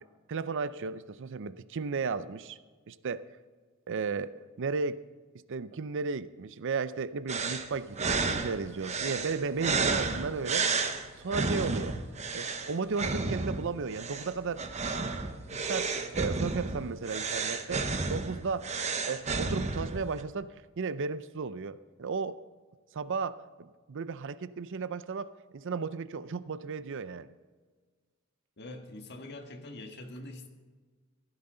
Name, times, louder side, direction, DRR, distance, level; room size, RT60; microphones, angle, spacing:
voice 1, 0.3-2.6 2.9-3.2 3.9-5.0 5.5-12.0 12.3-14.6 15.0-15.1 15.5-18.7 19.1-22.4 22.9-27.3, right 4 dB, 60° right, 15 dB, 0.5 m, -34 dB
sound 1, 7.3-20.2, right 4 dB, 30° right, 0.9 m, -32 dB
voice 2, 28.6-30.5, left 1 dB, 50° left, 4 dB, 1.5 m, -44 dB
15.5 x 13.5 x 3.9 m, 1.4 s
head